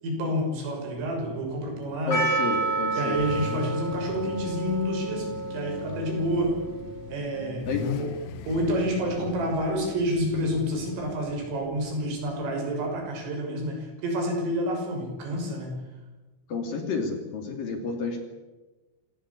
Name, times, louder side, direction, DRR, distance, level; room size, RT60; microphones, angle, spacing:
voice 1, 0.0-2.2 2.9-6.6 7.1-7.7 8.0-8.1 8.5-15.7, equal, 85° right, 1 dB, 8.7 m, -29 dB
Car / Idling / Accelerating revving vroom, 1.0-13.1, left 8 dB, 85° left, 3.7 m, -40 dB
voice 2, 2.1-3.2 7.6-7.8 16.5-18.3, left 4 dB, 50° left, 4 dB, 4.0 m, -30 dB
Percussion, 2.1-7.0, right 3 dB, 25° left, 3.0 m, -30 dB
26.5 x 17.5 x 8.4 m, 1.2 s
omnidirectional pair, 5.7 m